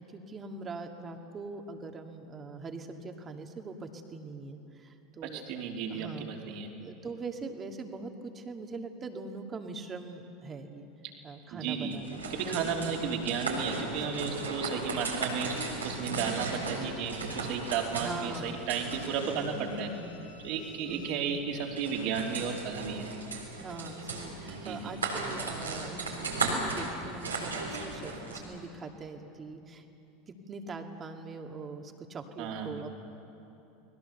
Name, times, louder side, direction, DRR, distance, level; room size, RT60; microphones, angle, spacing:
voice 1, 0.0-5.6 5.9-6.3 6.8-10.9 11.2-12.7 16.0-16.6 18.0-18.6 19.5-20.3 20.9-21.2 23.6-29.9 30.3-33.0, right 3 dB, 30° right, 4 dB, 2.3 m, -42 dB
voice 2, 5.2-6.7 11.5-12.0 12.3-19.9 20.4-23.1 24.5-25.0 32.4-32.8, right 6 dB, 55° right, 1 dB, 3.4 m, -34 dB
sound 1, 11.9-28.4, right 3 dB, 90° right, 4.2 m, -36 dB
Bowed string instrument, 16.1-21.3 21.6-21.7, left 3 dB, 80° left, 6.5 m, -55 dB
30.0 x 20.0 x 6.9 m, 2.9 s
figure-of-eight pair, 80°, 0 cm